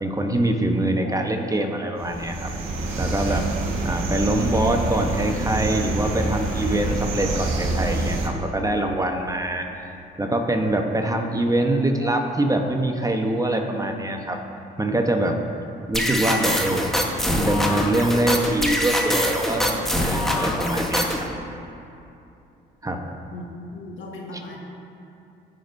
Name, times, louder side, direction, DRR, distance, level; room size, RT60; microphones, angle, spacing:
voice 1, 0.0-2.5 3.0-3.5 3.8-9.7 10.2-14.4 14.8-15.4 15.9-16.9 17.3-21.3 22.8-23.1 24.3-24.4, right 1 dB, 15° right, 3 dB, 1.0 m, -24 dB
sound 1, 2.0-8.3, right 2 dB, 70° right, 1.5 m, -26 dB
sound 2, 15.9-21.3, equal, ahead, 1.2 m, -24 dB
voice 2, 23.3-24.6, left 3 dB, 65° left, -1 dB, 1.6 m, -38 dB
16.0 x 6.1 x 2.7 m, 2.7 s
supercardioid pair, 60°, 21 cm